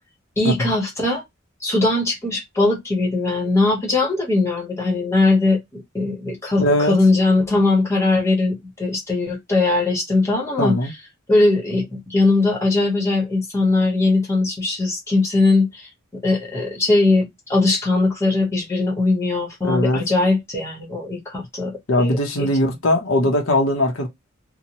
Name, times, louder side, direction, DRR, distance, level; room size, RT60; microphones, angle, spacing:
voice 1, 0.4-1.2 1.6-10.9 11.3-15.9 16.2-22.5, left 2 dB, 15° left, 1.0 m, -20 dB
voice 2, 6.6-6.9 10.6-10.9 19.6-20.0 21.9-24.1, left 1 dB, 80° left, 0.8 m, -19 dB
2.7 x 2.2 x 2.8 m
head